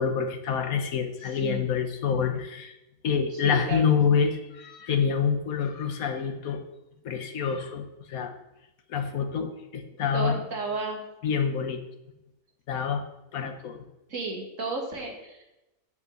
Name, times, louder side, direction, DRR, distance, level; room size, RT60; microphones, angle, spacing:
voice 1, 0.0-2.8 3.0-6.6 7.0-8.3 8.9-10.4 11.2-11.8 12.7-13.0 13.3-13.8, left 6 dB, 75° left, 6 dB, 1.5 m, -27 dB
voice 2, 1.2-1.7 3.3-3.9 10.1-11.0 14.1-15.6, right 3 dB, 60° right, 0 dB, 2.2 m, -33 dB
8.1 x 5.6 x 7.5 m, 0.93 s
omnidirectional pair, 1.5 m